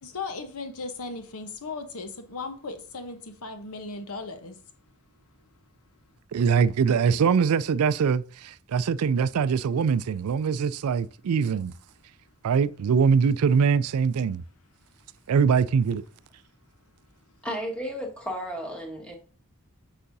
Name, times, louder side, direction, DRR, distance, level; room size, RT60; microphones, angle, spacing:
voice 1, 0.0-4.6 6.9-7.2, left 3 dB, 80° left, 1.0 m, -37 dB
voice 2, 6.3-11.7 12.4-14.4 15.3-16.0, right 6 dB, 80° right, 0.4 m, -23 dB
voice 3, 17.4-19.2, equal, 5° left, 1.6 m, -33 dB
8.5 x 5.6 x 2.7 m
head